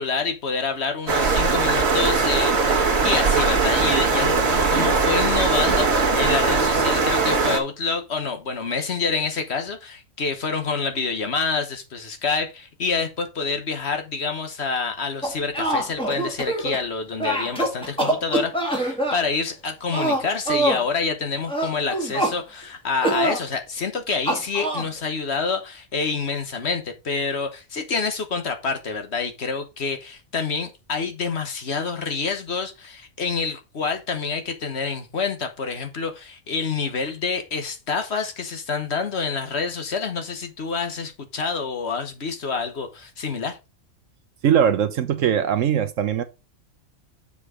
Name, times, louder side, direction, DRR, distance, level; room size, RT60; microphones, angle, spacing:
voice 1, 0.0-43.6, left 4 dB, 50° left, 1.3 m, -27 dB
sound 1, 1.1-7.6, right 4 dB, 50° right, 1.7 m, -20 dB
sound 2, 15.2-16.8 17.2-19.2 19.9-20.8 21.5-22.4 23.0-23.4 24.3-24.9, right 1 dB, 5° left, 1.9 m, -24 dB
voice 2, 44.4-46.2, right 8 dB, 70° right, 1.1 m, -20 dB
6.9 x 5.0 x 4.9 m
omnidirectional pair, 1.4 m